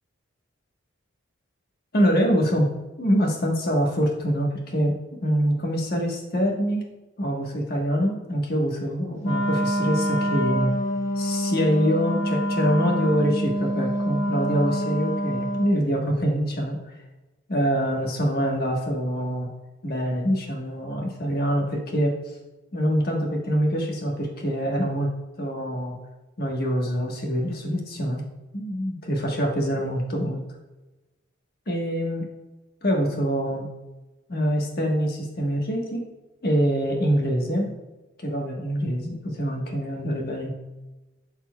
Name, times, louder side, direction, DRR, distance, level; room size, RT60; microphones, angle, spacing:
voice 1, 1.9-2.7 3.0-4.9 5.2-6.9 7.2-10.7 11.2-16.8 17.5-19.5 19.8-22.2 22.7-25.1 25.4-26.0 26.4-28.2 28.5-30.4 31.7-32.3 32.8-33.7 34.3-36.0 36.4-37.7 38.2-40.5, equal, 45° left, 0 dB, 1.3 m, -25 dB
Wind instrument woodwind instrument, 9.2-15.8, equal, 70° left, 1.3 m, -26 dB
12.0 x 4.4 x 2.3 m, 1.1 s
head